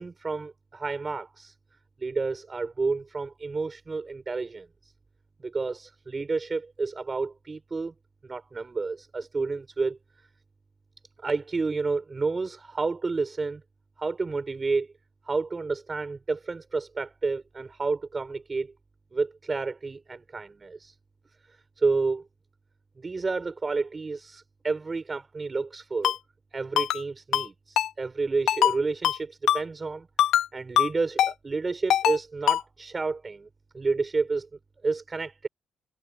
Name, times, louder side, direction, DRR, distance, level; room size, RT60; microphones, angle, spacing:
voice 1, 0.0-1.5 2.0-4.9 5.4-7.9 8.2-10.0 11.2-13.6 14.0-14.9 15.3-18.7 19.1-20.9 21.8-22.2 23.0-26.1 26.5-30.1 30.5-33.5 33.7-34.5 34.8-35.5, right 4 dB, 30° right, 6.8 m, -30 dB
Ringtone, 26.0-26.2 26.8-27.0 27.3-27.5 27.8-27.9 28.5-28.7 29.0-29.2 29.5-29.6 30.2-30.5 30.8-30.9 31.2-31.3 31.9-32.2 32.5-32.6, left 11 dB, 80° left, 3.1 m, -22 dB
cardioid pair, 90°, 0 cm